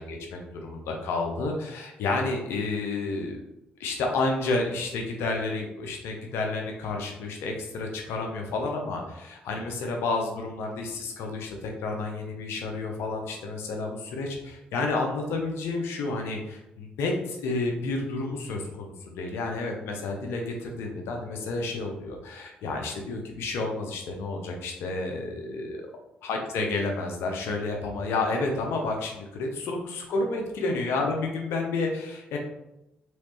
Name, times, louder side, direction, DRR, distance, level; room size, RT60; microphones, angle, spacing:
voice 1, 0.0-3.4 3.8-25.9 26.2-32.4, left 3 dB, 75° left, 2 dB, 0.7 m, -30 dB
3.1 x 3.1 x 3.1 m, 0.90 s
supercardioid pair, 50°, 4 cm